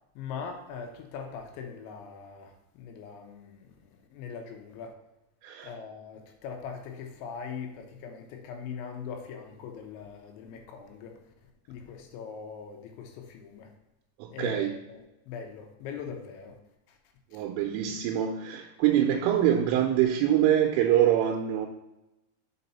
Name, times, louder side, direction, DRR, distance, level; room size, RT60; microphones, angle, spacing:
voice 1, 0.2-4.9 5.6-11.2 11.7-13.7 14.3-16.5 17.3-17.4, left 6 dB, 80° left, 3 dB, 2.9 m, -41 dB
voice 2, 14.2-14.8 17.3-21.7, right 10 dB, 85° right, 2 dB, 3.1 m, -25 dB
6.6 x 4.6 x 4.1 m, 0.95 s
omnidirectional pair, 5.6 m